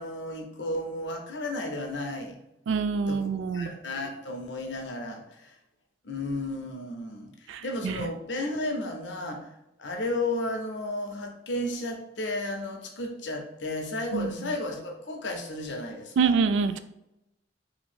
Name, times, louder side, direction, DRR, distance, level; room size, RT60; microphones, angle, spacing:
voice 1, 0.0-2.4 3.1-5.5 6.0-9.5 9.8-16.3, left 1 dB, 75° left, 3 dB, 0.7 m, -33 dB
voice 2, 2.7-3.7 7.5-8.0 14.1-14.3 16.2-16.8, right 5 dB, 80° right, 10 dB, 0.3 m, -26 dB
2.8 x 2.6 x 4.2 m, 0.88 s
head